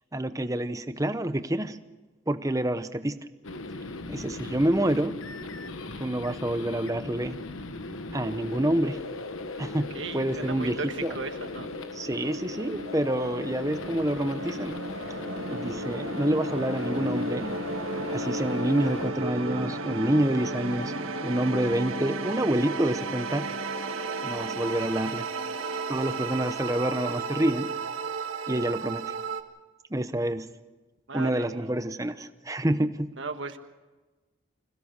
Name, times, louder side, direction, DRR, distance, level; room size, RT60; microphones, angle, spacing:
voice 1, 0.1-1.8 2.3-3.2 4.1-5.2 6.0-7.4 8.1-9.0 9.6-9.9 10.1-11.1 11.9-14.8 15.4-17.5 18.1-20.9 21.2-23.5 24.2-25.3 25.9-27.7 28.5-29.1 29.9-30.5 31.1-33.1, right 1 dB, 15° right, 11 dB, 0.8 m, -27 dB
sound 1, 3.4-19.1, left 3 dB, 80° left, 1.2 m, -38 dB
voice 2, 9.9-11.7 31.1-31.6 33.2-33.6, right 4 dB, 65° right, 7 dB, 1.5 m, -36 dB
sound 2, 11.1-29.4, right 3 dB, 85° right, 1.7 m, -34 dB
26.0 x 16.5 x 6.7 m, 1.2 s
head